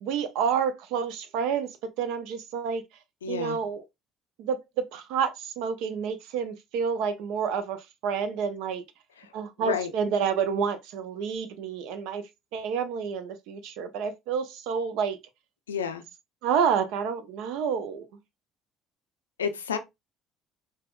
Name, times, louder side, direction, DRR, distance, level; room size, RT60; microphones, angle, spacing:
voice 1, 0.0-2.8 3.3-3.8 4.4-8.8 9.3-12.2 12.5-15.2 16.4-18.1, right 7 dB, 65° right, 0.4 m, -29 dB
voice 2, 3.2-3.6 9.6-9.9 15.7-16.0 19.4-19.8, left 7 dB, 85° left, 0.3 m, -30 dB
3.3 x 2.2 x 2.3 m
hypercardioid pair, 55°, 0 cm